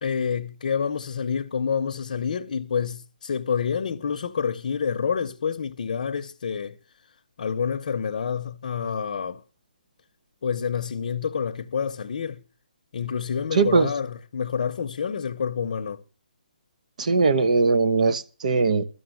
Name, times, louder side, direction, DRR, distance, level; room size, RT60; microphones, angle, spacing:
voice 1, 0.0-6.7 7.4-9.4 10.4-12.4 12.9-16.0, left 6 dB, 50° left, 0.7 m, -28 dB
voice 2, 13.5-13.9 17.0-18.9, right 4 dB, 50° right, 0.8 m, -20 dB
12.5 x 7.1 x 7.7 m
hypercardioid pair, 170°, 5 cm